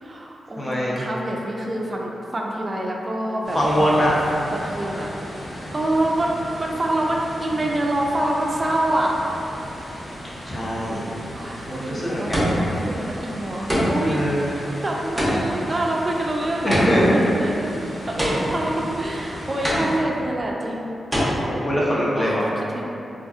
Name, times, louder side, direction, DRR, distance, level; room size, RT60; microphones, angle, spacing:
voice 1, 0.0-4.1 4.6-5.1 5.7-9.2 11.3-14.2 14.8-21.1 22.2-22.4 22.7-22.8, right 1 dB, 35° right, -1 dB, 0.3 m, -26 dB
voice 2, 0.6-1.0 3.5-4.2 10.5-11.0 11.7-12.6 14.0-14.5 16.6-17.3 21.5-22.5, equal, 30° left, -6 dB, 0.6 m, -22 dB
sound 1, 3.4-20.0, equal, 55° left, 0.9 m, -36 dB
sound 2, 11.3-11.7 12.3-12.9 13.7-14.2 15.2-17.2 18.2-18.8 19.6-20.3 21.1-21.2, equal, 5° right, 0.7 m, -24 dB
2.5 x 2.3 x 2.3 m, 2.8 s
cardioid pair, 65°, 0 cm